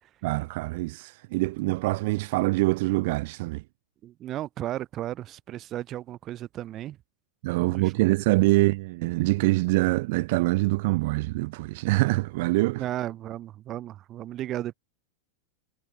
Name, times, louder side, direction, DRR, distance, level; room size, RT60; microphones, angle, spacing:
voice 1, 0.2-3.6 7.4-12.8, right 22 dB, 50° right, 0.7 m, -24 dB
voice 2, 4.0-7.0 7.6-7.9 12.8-14.7, right 13 dB, 30° right, 2.3 m, -34 dB
figure-of-eight pair, 90°, 0 cm